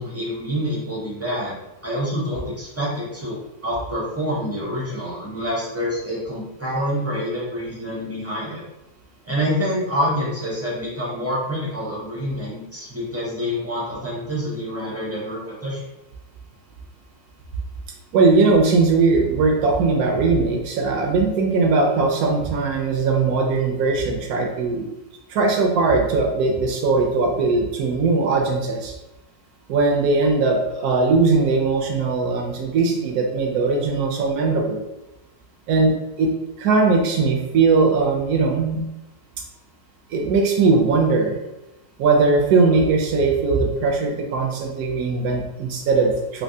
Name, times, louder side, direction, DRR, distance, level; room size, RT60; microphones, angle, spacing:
voice 1, 0.0-1.6 1.8-8.6 9.2-15.8, equal, 20° right, -7 dB, 0.3 m, -27 dB
voice 2, 18.1-24.9 25.3-28.9 29.7-34.8 35.7-36.3 36.6-38.8 40.1-41.4 42.0-46.4, right 4 dB, 70° right, 2 dB, 1.0 m, -19 dB
3.3 x 2.7 x 2.7 m, 0.96 s
omnidirectional pair, 1.8 m